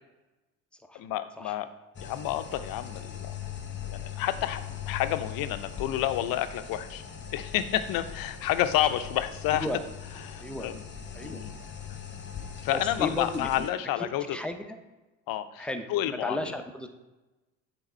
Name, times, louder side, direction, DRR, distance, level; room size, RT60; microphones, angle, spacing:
voice 1, 0.9-1.7 2.0-3.3 3.9-7.0 7.3-9.8 10.1-10.8 11.2-11.6 12.6-14.4 15.3-16.6, left 12 dB, 50° left, 11 dB, 0.6 m, -30 dB
sound 1, 1.9-13.7, left 8 dB, 25° left, 0.9 m, -40 dB
voice 2, 13.0-13.5 14.0-14.6 15.6-16.9, left 1 dB, ahead, 6 dB, 0.6 m, -34 dB
8.0 x 3.6 x 4.3 m, 1.1 s
hypercardioid pair, 70°, 44 cm